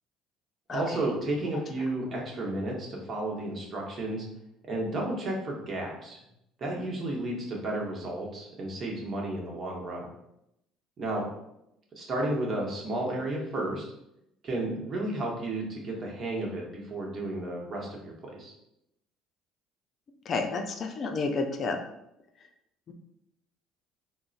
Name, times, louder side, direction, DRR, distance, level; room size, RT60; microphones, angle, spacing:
voice 1, 0.7-4.2 4.7-6.2 6.6-10.1 11.0-11.3 11.9-13.8 14.4-18.5, right 1 dB, 45° right, -2 dB, 0.9 m, -32 dB
voice 2, 20.3-21.8, left 3 dB, 50° left, 4 dB, 0.4 m, -30 dB
3.7 x 2.1 x 2.4 m, 0.82 s
supercardioid pair, 80°, 0 cm